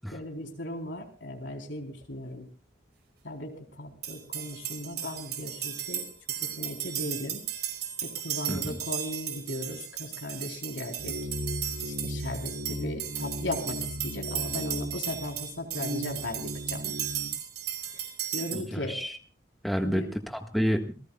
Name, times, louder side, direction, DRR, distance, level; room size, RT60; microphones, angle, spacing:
voice 1, 0.1-2.5 3.2-6.1 6.4-7.4 8.0-11.1 11.8-16.9 17.9-18.0 18.3-19.0 19.8-20.1, left 1 dB, 85° left, 2 dB, 3.9 m, -37 dB
sound 1, 4.0-18.6, right 10 dB, 65° right, 4.7 m, -35 dB
sound 2, 11.0-17.3, equal, 90° right, 5.3 m, -37 dB
voice 2, 18.5-19.2 19.6-20.9, equal, ahead, 3 dB, 1.5 m, -29 dB
27.5 x 18.5 x 2.4 m, 0.36 s
head